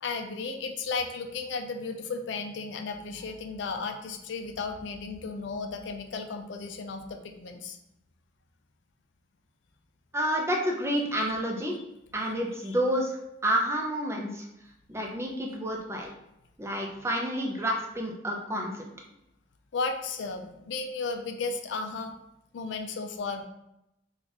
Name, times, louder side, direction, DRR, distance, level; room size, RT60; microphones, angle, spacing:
voice 1, 0.0-7.8 12.6-12.8 19.7-22.2 22.5-23.4, left 4 dB, 85° left, 5 dB, 0.4 m, -34 dB
voice 2, 10.1-11.8 12.1-13.2 13.4-14.4 14.9-16.1 16.6-18.8, equal, 15° right, 0 dB, 0.5 m, -29 dB
2.9 x 2.4 x 4.0 m, 0.84 s
head